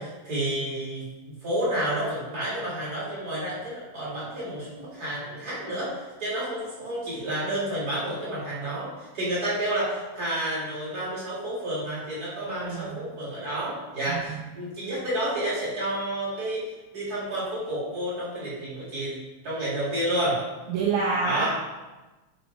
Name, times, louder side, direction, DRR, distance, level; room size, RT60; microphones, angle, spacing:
voice 1, 0.0-16.6 16.9-19.2 19.4-20.4 21.2-21.5, right 1 dB, 30° right, -8 dB, 3.6 m, -30 dB
voice 2, 12.5-13.0 14.1-14.4 20.7-21.5, right 4 dB, 85° right, -4 dB, 2.6 m, -27 dB
11.0 x 4.6 x 4.4 m, 1.2 s
omnidirectional pair, 3.4 m